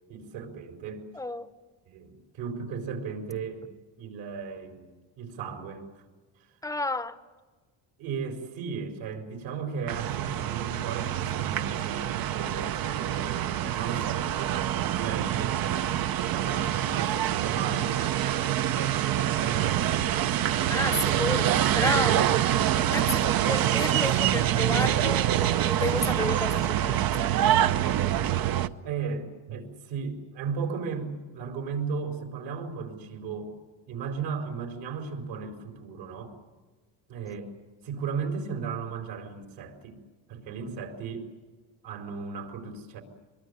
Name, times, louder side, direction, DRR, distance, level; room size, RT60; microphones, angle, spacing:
voice 1, 0.1-1.1 1.8-3.7 4.0-6.0 6.4-6.5 8.0-15.9 16.2-19.0 19.4-21.3 28.8-33.5 33.9-36.4 37.1-37.5 37.8-40.0 40.3-41.3 41.8-43.0, right 5 dB, 75° right, 5 dB, 4.9 m, -36 dB
voice 2, 1.1-1.5 6.6-7.2 20.7-22.3 22.9-27.3, left 2 dB, 5° left, 12 dB, 0.8 m, -31 dB
sound 1, 9.9-28.7, right 11 dB, 50° right, 0.9 m, -26 dB
24.0 x 22.5 x 9.9 m, 1.3 s
cardioid pair, 140°, 47 cm